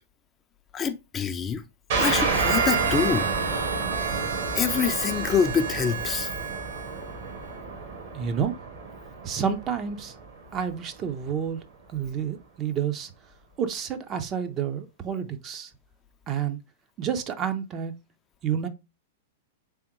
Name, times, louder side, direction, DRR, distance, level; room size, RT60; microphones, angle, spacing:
voice 1, 0.7-1.6 2.0-3.3 4.5-6.3, left 6 dB, 25° left, 0.4 m, -25 dB
sound 1, 1.9-11.1, right 4 dB, 65° right, 1.6 m, -31 dB
Harmonica, 2.1-7.1, right 6 dB, 90° right, 0.6 m, -31 dB
voice 2, 8.1-8.6 9.2-10.1 10.5-11.6 11.9-13.1 13.6-15.7 16.3-16.6 17.0-17.9 18.4-18.7, right 8 dB, 30° right, 0.6 m, -29 dB
3.5 x 3.4 x 2.9 m
hypercardioid pair, 110°, 0 cm